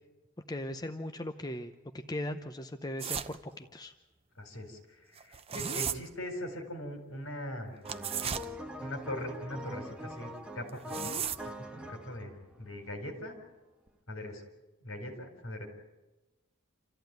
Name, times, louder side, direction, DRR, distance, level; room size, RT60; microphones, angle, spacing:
voice 1, 0.5-3.9, left 1 dB, 20° left, 6 dB, 0.8 m, -38 dB
sound 1, 3.0-3.4 5.2-6.0 7.8-8.5 10.7-11.5, right 7 dB, 30° right, 0.8 m, -34 dB
voice 2, 4.4-7.8 8.8-11.3 11.6-12.3 12.6-13.3 14.1-14.4 14.8-15.7, left 1 dB, 70° left, 5 dB, 4.4 m, -41 dB
sound 2, 7.8-13.3 13.9-14.0, equal, 5° right, 1.5 m, -44 dB
28.0 x 14.5 x 9.4 m, 1.1 s
head